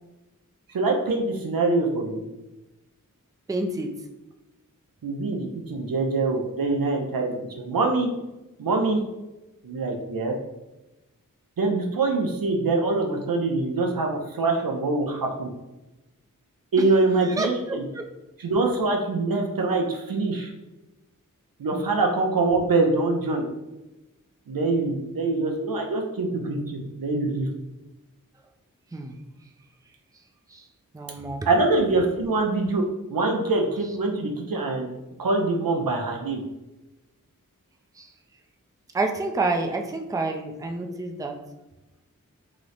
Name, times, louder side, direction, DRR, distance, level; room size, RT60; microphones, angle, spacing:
voice 1, 0.7-2.2 5.0-8.1 8.6-9.0 9.6-10.4 11.6-15.5 16.7-17.9 18.4-20.5 21.6-23.5 24.5-27.5 31.5-32.8 33.1-34.9 35.2-36.4, right 3 dB, 90° right, 1 dB, 0.5 m, -24 dB
voice 2, 3.5-3.9 17.4-17.5 21.7-21.9 28.9-29.1 30.5-30.6 30.9-31.5 38.0-38.1 38.9-41.3, right 3 dB, 10° right, 4 dB, 0.3 m, -28 dB
3.0 x 2.0 x 3.9 m, 1.0 s
wide cardioid pair, 40°, 33 cm